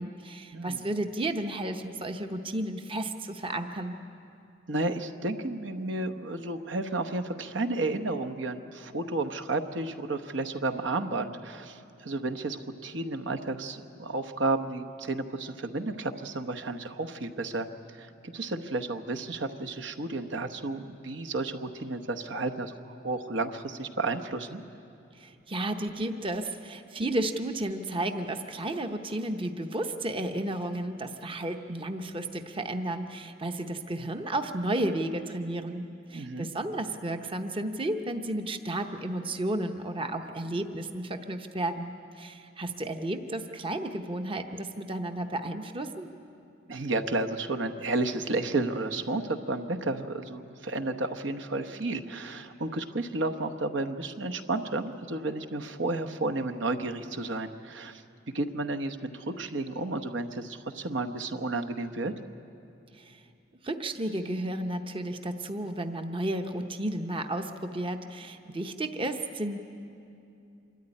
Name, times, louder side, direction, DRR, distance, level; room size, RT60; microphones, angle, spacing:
voice 1, 0.0-4.0 25.1-35.8 36.1-46.1 62.9-63.2 63.6-69.6, right 1 dB, 25° right, 6 dB, 0.9 m, -33 dB
voice 2, 4.7-24.6 36.1-36.5 46.7-58.0 58.3-62.1, right 2 dB, 70° right, 6 dB, 1.0 m, -32 dB
26.0 x 13.5 x 9.9 m, 2.6 s
head